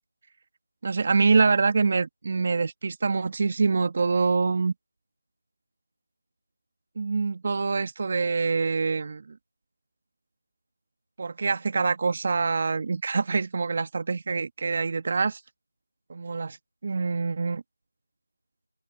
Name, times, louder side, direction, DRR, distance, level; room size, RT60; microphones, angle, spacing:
voice 1, 0.8-4.7 6.9-9.4 11.2-15.4 16.1-16.6 16.8-17.6, right 4 dB, 35° right, 1.7 m, -25 dB
open air
figure-of-eight pair, 170°, 0 cm